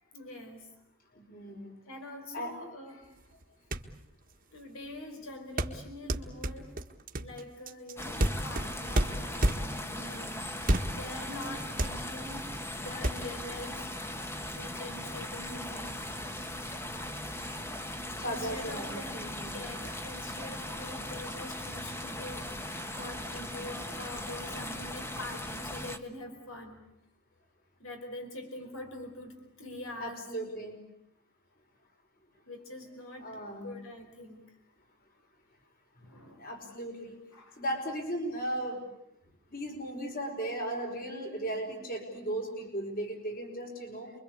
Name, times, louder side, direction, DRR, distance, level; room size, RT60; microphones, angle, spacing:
voice 1, 0.1-0.7 1.1-1.2 1.9-3.4 4.5-6.8 7.2-14.1 14.4-16.0 16.4-16.5 18.2-19.2 19.5-26.8 27.8-30.2 32.4-34.6 36.0-36.6 37.3-37.6, left 1 dB, 75° left, 5 dB, 4.8 m, -44 dB
voice 2, 1.2-1.8 2.3-2.5 18.1-19.6 30.0-30.8 33.2-33.7 36.4-37.2 37.6-38.8 39.5-44.1, right 1 dB, 45° left, 4 dB, 5.3 m, -36 dB
sound 1, 3.4-3.5 3.7-4.0 5.6-9.9 10.6-11.1 11.4-11.5 11.8-12.4 13.0-13.1, right 1 dB, 40° right, 1.6 m, -29 dB
sound 2, 8.0-26.0, left 1 dB, 10° left, 1.4 m, -39 dB
28.5 x 23.5 x 8.5 m, 0.77 s
head